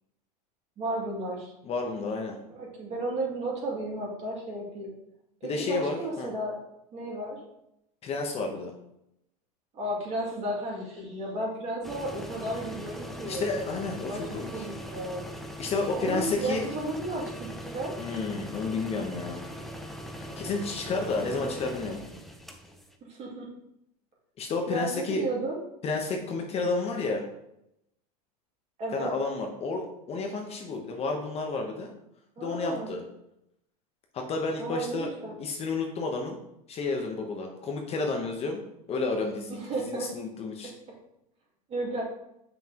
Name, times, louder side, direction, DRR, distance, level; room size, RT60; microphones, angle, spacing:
voice 1, 0.8-1.5 2.5-4.9 5.4-6.6 6.9-7.4 9.7-13.5 14.1-15.3 15.9-17.9 21.2-21.4 21.8-21.9 23.0-23.5 24.7-25.6 28.8-29.1 32.4-32.9 34.6-35.3 39.5-40.1 41.7-42.0, right 2 dB, 30° right, -3 dB, 2.5 m, -33 dB
voice 2, 1.6-2.4 5.4-6.3 8.0-8.7 13.2-14.6 15.6-16.6 18.0-19.4 20.4-22.0 24.4-25.2 25.8-27.2 28.9-31.9 32.4-33.0 34.1-35.1 35.4-36.4 36.7-38.6 38.9-39.6 39.9-40.7, left 3 dB, 30° left, 2 dB, 0.9 m, -31 dB
sound 1, 11.8-22.9, equal, ahead, 0.6 m, -41 dB
7.2 x 5.8 x 2.9 m, 0.82 s
supercardioid pair, 125°, 20 cm